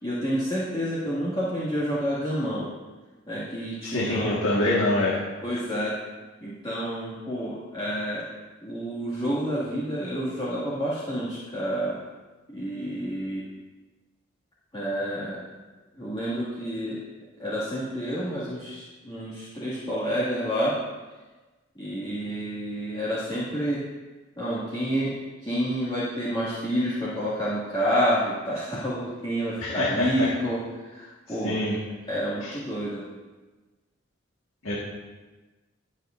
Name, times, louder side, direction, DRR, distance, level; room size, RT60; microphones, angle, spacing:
voice 1, 0.0-2.7 3.3-4.4 5.4-6.0 6.4-8.3 8.6-12.0 12.5-13.4 14.7-15.4 15.9-17.0 17.4-20.7 21.8-23.8 24.4-25.1 25.4-31.6 32.1-33.0, equal, 20° left, -11 dB, 2.2 m, -29 dB
voice 2, 3.8-5.2 29.6-30.3 31.4-31.8 32.4-32.5 34.6-34.7, left 2 dB, 85° left, -5 dB, 1.8 m, -25 dB
20.0 x 7.5 x 2.7 m, 1.2 s
head